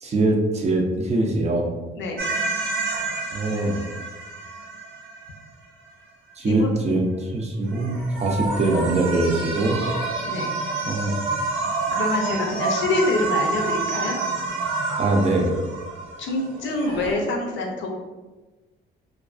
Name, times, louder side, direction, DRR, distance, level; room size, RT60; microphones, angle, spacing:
voice 1, 0.0-1.7 3.3-3.8 6.4-9.8 10.9-11.2 15.0-15.5, right 2 dB, 35° right, 0 dB, 0.4 m, -22 dB
sound 1, 2.2-5.4 7.7-17.1, right 3 dB, 80° right, 0.6 m, -28 dB
voice 2, 6.4-6.8 10.2-10.5 11.9-14.2 16.2-17.9, left 2 dB, 75° left, 1 dB, 0.5 m, -26 dB
2.3 x 2.3 x 2.4 m, 1.2 s
cardioid pair, 90°, 20 cm